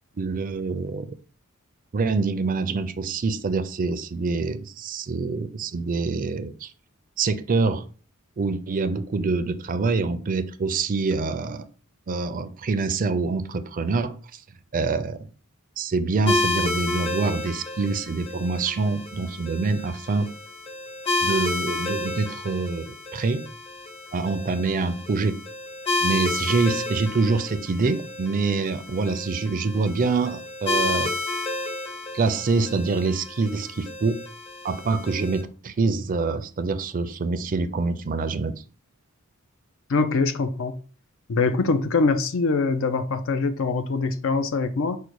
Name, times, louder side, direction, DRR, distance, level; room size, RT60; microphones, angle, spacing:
voice 1, 0.2-1.1 1.9-6.7 7.2-7.8 8.4-11.6 12.1-14.1 14.7-15.3 15.8-20.3 21.2-22.9 23.1-23.5 24.1-25.4 26.0-31.1 32.1-34.2 34.6-38.6, right 4 dB, 40° right, 0.4 m, -25 dB
sound 1, 16.3-35.4, left 2 dB, 25° left, 0.8 m, -31 dB
voice 2, 39.9-40.8 41.3-45.0, left 4 dB, 65° left, 0.5 m, -23 dB
5.2 x 2.2 x 4.6 m
head